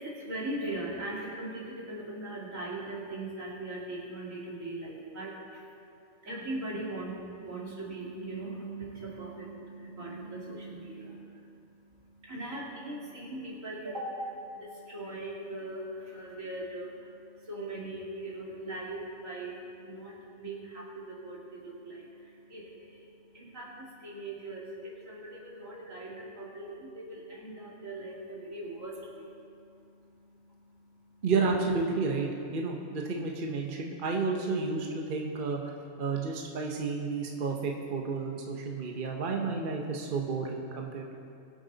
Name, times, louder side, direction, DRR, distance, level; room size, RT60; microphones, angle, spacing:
voice 1, 0.0-5.7 6.2-31.3, right 2 dB, 75° right, -4 dB, 2.9 m, -40 dB
voice 2, 31.2-32.3 32.5-35.6 36.0-41.2, right 4 dB, 45° right, 0 dB, 1.1 m, -31 dB
22.0 x 8.1 x 4.0 m, 2.5 s
omnidirectional pair, 1.4 m